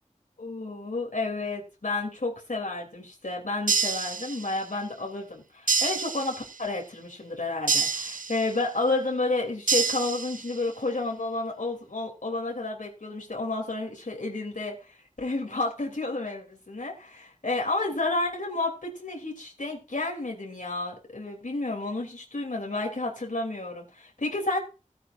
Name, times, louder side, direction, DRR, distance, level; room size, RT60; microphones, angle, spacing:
voice 1, 0.4-24.6, left 2 dB, 75° left, 0 dB, 3.0 m, -31 dB
sound 1, 3.7-4.7 5.7-6.7 7.7-8.7 9.7-10.7, right 5 dB, 85° right, 0.7 m, -28 dB
16.0 x 9.5 x 2.6 m, 0.30 s
wide cardioid pair, 45°, 14 cm